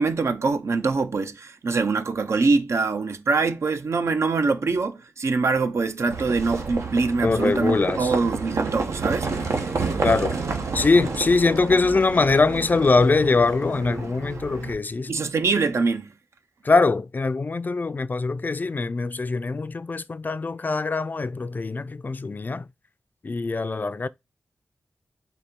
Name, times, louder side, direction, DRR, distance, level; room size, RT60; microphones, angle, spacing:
voice 1, 0.0-9.3 15.1-16.1, right 4 dB, 70° right, 0.5 m, -24 dB
Livestock farm animals working animals, 6.1-14.7, right 4 dB, 90° right, 0.9 m, -30 dB
voice 2, 7.2-8.1 10.0-10.4 10.7-15.1 16.6-22.7 23.2-24.1, left 3 dB, 40° left, 0.4 m, -22 dB
4.1 x 2.8 x 3.5 m
wide cardioid pair, 75°, 5 cm